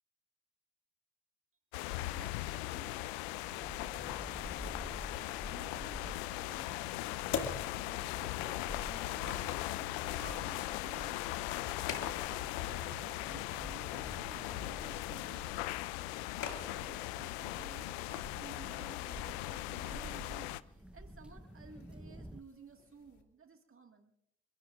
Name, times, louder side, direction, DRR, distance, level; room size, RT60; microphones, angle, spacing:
sound 1, 1.7-20.6, left 18 dB, 85° left, 0.5 m, -39 dB
voice 1, 2.0-3.5 3.7-11.2 11.8-15.6 16.4-24.1, right 4 dB, 40° right, 5 dB, 2.1 m, -56 dB
sound 2, 3.0-22.4, equal, 5° right, 1.0 m, -50 dB
sound 3, 18.7-23.2, left 7 dB, 65° left, 2.5 m, -48 dB
28.5 x 15.0 x 2.6 m, 0.78 s
hypercardioid pair, 45°, 31 cm